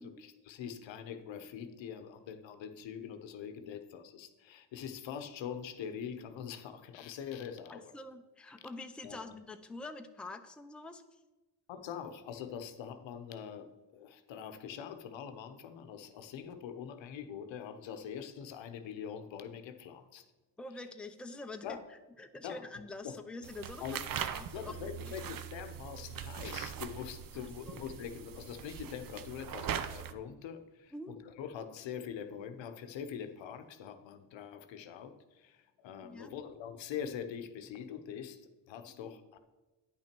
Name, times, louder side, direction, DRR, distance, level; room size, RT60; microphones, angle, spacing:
voice 1, 0.0-7.8 9.0-9.2 11.7-20.2 21.6-21.8 22.4-22.7 23.0-23.2 23.8-24.0 24.5-38.4 38.7-39.4, left 8 dB, 75° left, 9 dB, 0.9 m, -43 dB
voice 2, 7.7-11.2 20.6-21.8 22.2-23.8 24.4-25.1 27.7-27.8 30.9-31.1 36.0-36.3 39.0-39.1, left 2 dB, ahead, 6 dB, 0.6 m, -46 dB
sound 1, 23.4-30.1, right 9 dB, 50° right, 0.7 m, -41 dB
9.7 x 5.9 x 4.5 m, 1.1 s
cardioid pair, 80°, 45 cm